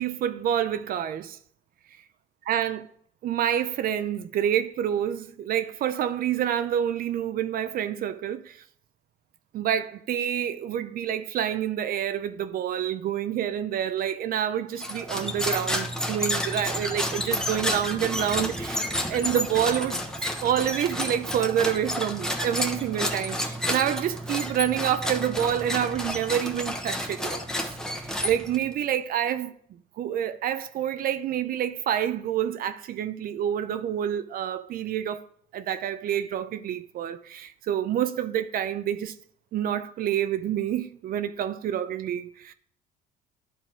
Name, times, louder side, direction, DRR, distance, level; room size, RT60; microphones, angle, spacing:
voice 1, 0.0-1.4 2.5-2.8 3.2-8.6 9.5-20.0 20.4-35.2 35.5-39.1 39.5-42.5, right 10 dB, 55° right, 0.5 m, -28 dB
sound 1, 14.8-28.7, equal, 5° left, 1.0 m, -30 dB
11.0 x 3.9 x 4.5 m
cardioid pair, 110°, 18 cm